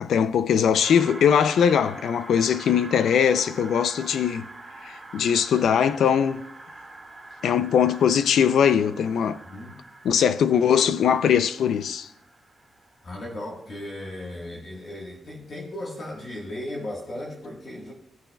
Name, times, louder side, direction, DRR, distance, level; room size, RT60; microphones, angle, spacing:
voice 1, 0.0-4.4 4.8-6.4 7.4-9.4 10.0-12.1, left 8 dB, 75° left, 0.4 m, -21 dB
sound 1, 0.8-13.5, right 2 dB, 15° right, 1.8 m, -44 dB
voice 2, 9.4-9.8 13.0-17.9, left 1 dB, 40° left, 1.5 m, -36 dB
16.5 x 8.9 x 2.3 m
wide cardioid pair, 150°, 0 cm